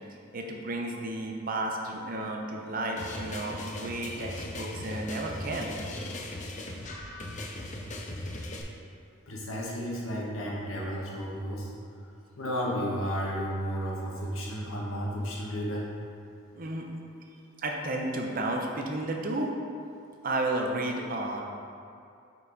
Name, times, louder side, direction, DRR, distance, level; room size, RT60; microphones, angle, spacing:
voice 1, 0.3-5.7 16.5-16.9 17.6-19.5 20.2-21.4, right 2 dB, 45° right, 1 dB, 0.6 m, -32 dB
sound 1, 3.0-8.6, left 1 dB, 35° left, 0.5 m, -38 dB
voice 2, 9.3-11.7 12.3-15.9, equal, 90° left, -3 dB, 1.2 m, -32 dB
5.7 x 4.6 x 4.0 m, 2.5 s
head